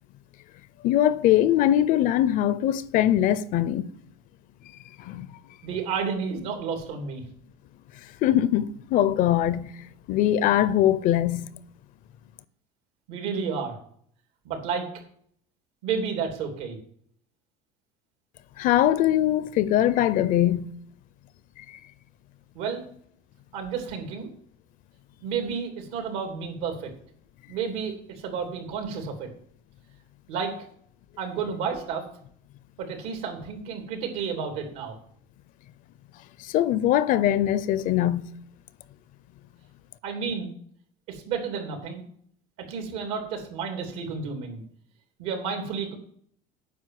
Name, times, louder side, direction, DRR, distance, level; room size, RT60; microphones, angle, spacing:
voice 1, 0.8-3.8 5.0-5.3 8.2-9.7 10.1-11.5 18.6-20.7 36.4-38.3, left 12 dB, 50° left, 0.6 m, -22 dB
voice 2, 5.6-7.2 13.1-13.7 14.4-14.9 15.8-16.8 22.5-22.8 23.5-24.3 25.2-26.9 27.5-29.3 30.3-30.5 31.2-32.0 32.8-34.9 40.0-40.5 41.1-42.0 42.7-44.6 45.2-46.0, right 6 dB, 80° right, 3.1 m, -31 dB
9.4 x 6.0 x 7.7 m
cardioid pair, 140°, 18 cm